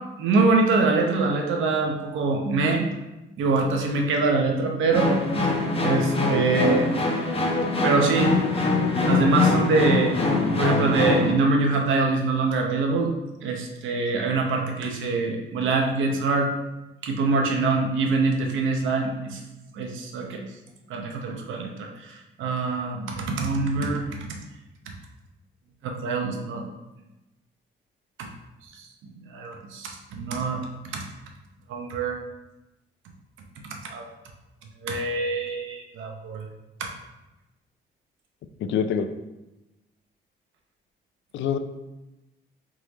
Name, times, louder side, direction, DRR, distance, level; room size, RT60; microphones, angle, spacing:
voice 1, 0.2-2.9 3.4-5.2 5.8-6.9 7.8-8.3 9.0-10.1 10.6-13.1 13.4-16.5 17.0-19.4 19.7-20.4 20.9-21.9 22.4-24.1 25.8-26.6 28.2-28.3 29.3-30.7 30.9-31.0 31.7-32.2 33.9-34.0 34.8-36.5 36.8-36.9, right 3 dB, 80° right, 2 dB, 0.8 m, -24 dB
sound 1, 4.9-11.3, left 3 dB, 30° left, 0.9 m, -23 dB
voice 2, 38.6-39.1 41.3-41.6, left 7 dB, 70° left, 9 dB, 0.4 m, -25 dB
3.7 x 3.2 x 4.0 m, 1.0 s
cardioid pair, 90°, 20 cm